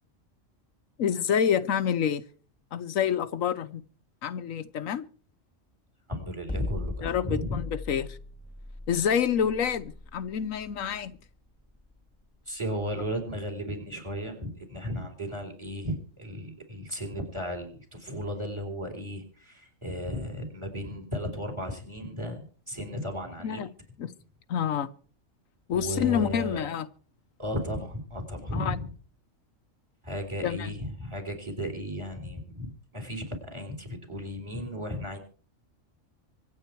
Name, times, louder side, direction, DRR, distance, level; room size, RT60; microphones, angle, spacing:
voice 1, 1.0-2.2 2.7-3.8 4.2-5.1 7.0-8.2 8.9-11.1 23.4-23.7 24.0-24.1 24.5-24.9 25.7-26.9 28.5-28.8 30.4-30.8, left 8 dB, 90° left, 1.3 m, -28 dB
voice 2, 6.1-7.6 12.5-23.6 25.7-26.6 27.4-28.9 30.0-35.2, equal, 20° right, 4.0 m, -35 dB
sound 1, 6.5-12.7, left 2 dB, 5° left, 1.7 m, -38 dB
25.0 x 8.4 x 4.6 m
omnidirectional pair, 1.3 m